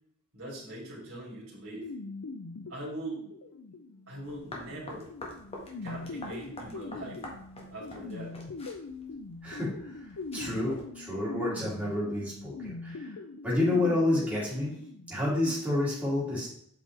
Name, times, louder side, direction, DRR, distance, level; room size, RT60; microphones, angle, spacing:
voice 1, 0.3-1.9 2.7-3.2 4.1-5.1 5.8-7.3 7.7-8.4, right 1 dB, 70° right, -5 dB, 3.2 m, -41 dB
sound 1, 1.8-15.5, left 3 dB, 85° left, 0.5 m, -42 dB
sound 2, 4.2-10.8, left 1 dB, 30° left, 1.6 m, -47 dB
voice 2, 9.4-13.2 13.4-14.7 15.1-16.5, left 2 dB, 5° right, -8 dB, 3.0 m, -29 dB
8.2 x 5.1 x 3.4 m, 0.68 s
head